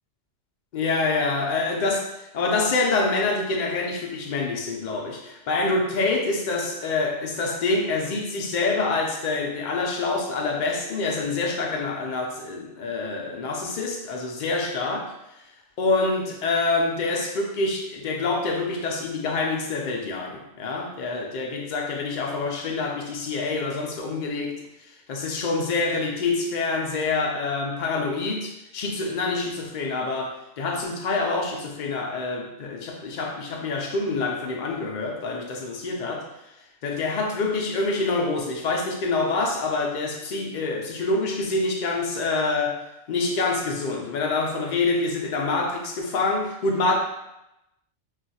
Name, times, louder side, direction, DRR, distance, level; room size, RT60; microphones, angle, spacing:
voice 1, 0.7-2.0 2.3-15.1 15.8-24.6 25.1-36.2 36.8-42.7 43.1-47.0, left 3 dB, 55° left, 1 dB, 0.5 m, -26 dB
2.4 x 2.3 x 4.0 m, 0.90 s
omnidirectional pair, 1.2 m